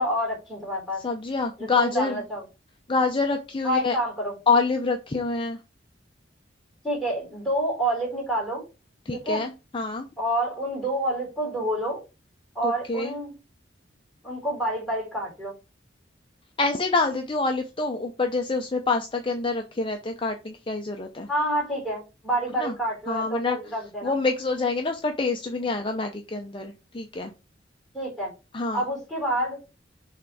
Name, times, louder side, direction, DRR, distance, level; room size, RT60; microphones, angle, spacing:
voice 1, 0.0-1.0 1.6-2.4 3.6-4.3 6.8-8.7 9.1-9.4 10.2-12.0 12.6-13.4 14.2-15.5 21.3-24.1 27.9-28.3 28.7-29.6, right 1 dB, ahead, 3.6 m, -28 dB
voice 2, 1.0-2.2 2.9-4.0 4.5-5.6 9.1-10.1 12.6-13.1 16.6-21.3 22.6-22.7 23.1-23.6 24.0-27.3 28.5-28.8, left 3 dB, 30° left, 0.6 m, -26 dB
6.5 x 3.4 x 4.8 m
head